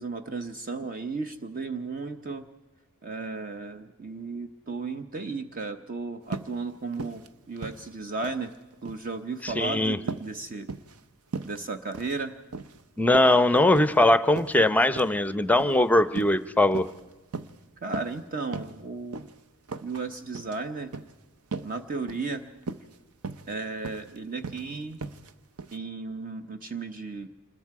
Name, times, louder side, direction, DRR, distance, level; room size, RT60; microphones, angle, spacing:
voice 1, 0.0-2.5 3.0-8.5 8.8-10.7 11.4-12.3 17.8-19.3 19.8-20.9 21.6-22.4 23.5-25.0 25.7-27.3, right 3 dB, 40° right, 7 dB, 0.8 m, -34 dB
sound 1, 6.3-6.6 6.9-7.3 7.6-8.4 8.7-9.1 9.4-9.7 10.1-10.3 10.7-11.0 11.3-11.6 11.9-12.2 12.5-12.8 13.1-14.0 14.4-14.6 15.0-15.2 15.6-15.8 16.1-16.4 16.7-17.0 17.3-17.6 17.9-18.2 18.5-18.8 19.1-19.3 19.7-20.0 20.3-20.6 20.9-21.1 21.5-21.8 22.1-22.3 22.6-23.0 23.2-23.5 23.8-24.1 24.4-24.6 25.0-25.3 25.6-25.8, right 4 dB, 90° right, 0.8 m, -37 dB
voice 2, 9.4-10.0 13.0-16.9, left 1 dB, 5° left, 12 dB, 0.6 m, -21 dB
26.5 x 21.0 x 4.8 m, 1.1 s
head